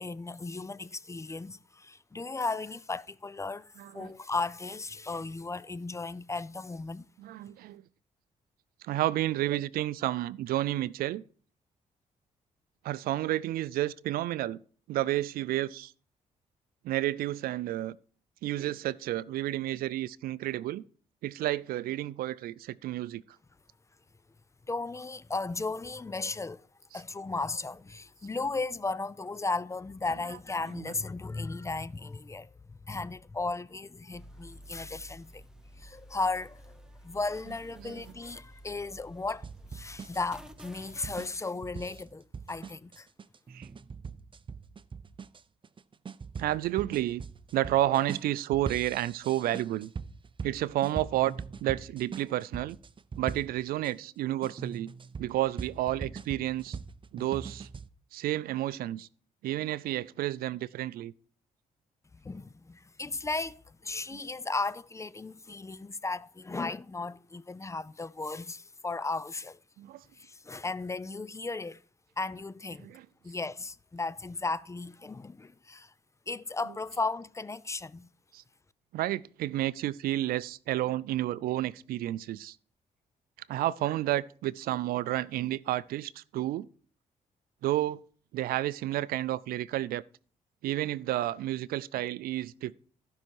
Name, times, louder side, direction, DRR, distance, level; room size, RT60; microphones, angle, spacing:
voice 1, 0.0-7.0 24.7-26.7 26.9-35.4 35.8-43.1 62.1-69.6 70.2-71.8 72.2-72.9 73.2-75.9 76.3-78.1, left 3 dB, 20° left, 0.5 m, -35 dB
voice 2, 3.8-4.1 7.2-7.8 8.8-11.2 12.8-14.6 14.9-15.9 16.8-18.0 18.4-20.8 21.2-23.2 30.8-30.9 37.8-38.0 43.5-43.7 46.4-47.2 47.5-49.9 50.4-51.3 51.6-52.8 53.2-54.9 55.2-56.8 57.1-57.7 58.1-59.1 59.4-61.1 64.1-64.2 69.8-70.0 72.8-73.1 78.3-78.4 78.9-82.6 83.5-86.7 87.6-88.0 88.3-90.0 90.6-92.7, right 14 dB, 80° right, 0.4 m, -31 dB
sound 1, 34.1-41.3, equal, 5° right, 1.1 m, -51 dB
sound 2, 39.4-53.9 54.4-57.9, right 5 dB, 35° right, 0.6 m, -42 dB
14.5 x 5.6 x 4.6 m
cardioid pair, 65°, 15 cm